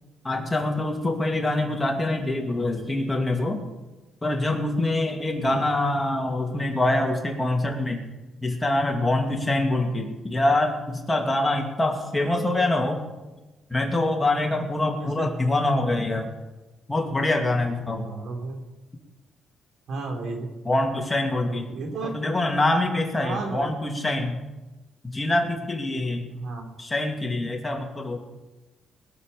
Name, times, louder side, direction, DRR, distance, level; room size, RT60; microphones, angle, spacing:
voice 1, 0.2-3.6 4.2-8.0 8.4-13.0 13.7-16.3 16.9-18.1 20.6-21.8 22.0-24.4 25.0-26.3 26.8-28.2, left 2 dB, 15° left, 2 dB, 2.4 m, -25 dB
voice 2, 14.9-15.3 17.9-18.6 19.9-20.5 21.3-22.1 23.2-23.7 26.3-26.7, right 3 dB, 70° right, 3 dB, 3.1 m, -33 dB
20.5 x 6.9 x 6.9 m, 1.1 s
cardioid pair, 90°, 0 cm